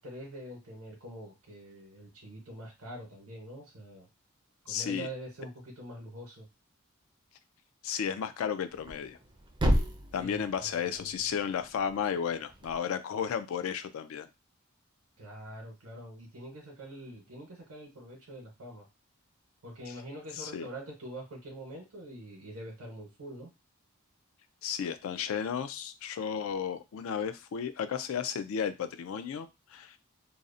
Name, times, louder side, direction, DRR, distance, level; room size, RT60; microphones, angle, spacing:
voice 1, 0.0-4.1 4.6-6.5 10.2-11.2 15.2-18.9 19.6-23.5, right 1 dB, 85° right, -1 dB, 0.8 m, -45 dB
voice 2, 4.7-5.1 7.8-9.2 10.1-14.3 19.9-20.0 20.4-20.7 24.6-30.0, left 7 dB, 70° left, 10 dB, 0.3 m, -33 dB
Thump thud, 8.7-12.8, equal, 20° right, 0.4 m, -33 dB
2.6 x 2.0 x 2.5 m, 0.25 s
head